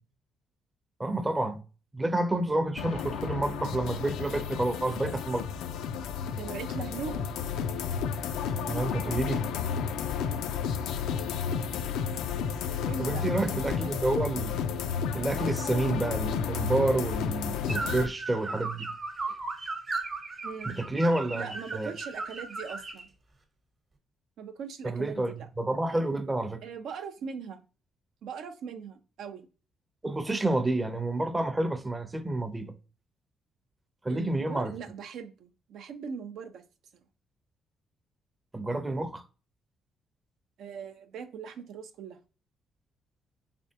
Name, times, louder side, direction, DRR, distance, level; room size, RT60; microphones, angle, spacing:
voice 1, 1.0-1.6 1.9-5.5 8.7-9.5 13.0-14.6 15.1-18.9 20.6-21.9 24.8-26.6 30.0-32.7 34.0-34.7 38.5-39.2, right 2 dB, 15° right, 0.5 m, -29 dB
sound 1, 2.8-18.1, left 7 dB, 90° left, 0.3 m, -32 dB
voice 2, 6.3-7.3 12.9-13.9 20.4-20.7 21.3-23.1 24.4-25.5 26.6-27.6 28.2-29.5 34.1-36.6 40.6-42.2, right 6 dB, 75° right, 0.4 m, -40 dB
sound 2, 17.7-23.0, right 3 dB, 35° right, 0.9 m, -36 dB
3.4 x 3.3 x 2.7 m
cardioid pair, 90°, 0 cm